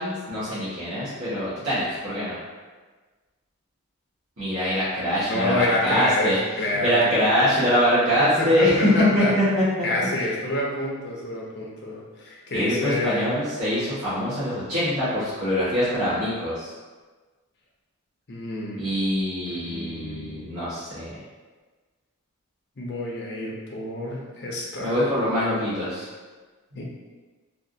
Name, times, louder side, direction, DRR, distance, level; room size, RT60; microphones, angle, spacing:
voice 1, 0.0-2.4 4.4-6.4 6.8-9.6 12.5-16.7 18.8-21.1 24.8-26.1, equal, 80° right, -12 dB, 1.4 m, -23 dB
voice 2, 5.2-7.1 8.2-9.3 9.8-13.3 18.3-19.0 19.5-20.4 22.8-25.0 26.7-26.8, left 1 dB, 50° left, -4 dB, 0.7 m, -28 dB
3.5 x 2.4 x 2.7 m, 1.4 s
head